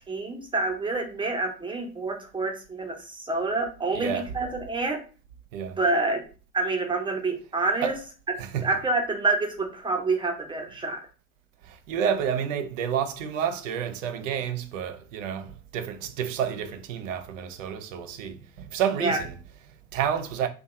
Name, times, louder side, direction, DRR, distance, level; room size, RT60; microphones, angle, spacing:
voice 1, 0.1-5.0 5.8-6.2 6.5-7.9 8.6-11.0 19.0-19.2, right 3 dB, 10° right, 0.7 m, -27 dB
voice 2, 3.9-4.4 5.5-5.8 7.8-8.0 8.4-8.8 11.6-20.5, right 8 dB, 60° right, 0.6 m, -30 dB
2.7 x 2.3 x 4.1 m
figure-of-eight pair, 65°, 43 cm